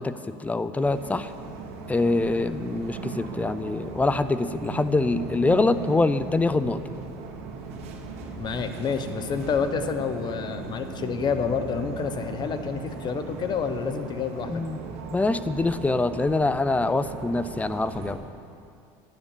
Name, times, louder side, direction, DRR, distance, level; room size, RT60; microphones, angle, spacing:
voice 1, 0.0-1.3 1.9-6.8 14.5-14.8 15.1-18.2, left 3 dB, 10° left, 13 dB, 0.6 m, -24 dB
sound 1, 0.8-18.1, right 4 dB, 60° right, 2.0 m, -38 dB
voice 2, 8.4-14.6, left 6 dB, 40° left, 9 dB, 1.1 m, -29 dB
12.0 x 9.8 x 7.4 m, 2.5 s
supercardioid pair, 95°, 12 cm